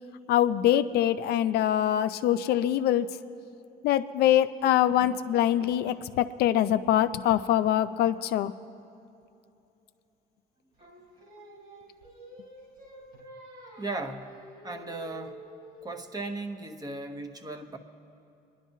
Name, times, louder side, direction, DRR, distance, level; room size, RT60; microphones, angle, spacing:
voice 1, 0.3-3.1 3.8-8.5, left 11 dB, 75° left, 10 dB, 0.4 m, -24 dB
Singing, 10.8-16.0, equal, 65° right, 3.2 m, -48 dB
voice 2, 13.8-15.4 15.8-17.8, right 2 dB, 20° right, 5 dB, 0.8 m, -37 dB
27.0 x 11.0 x 2.7 m, 2.7 s
cardioid pair, 110°, 17 cm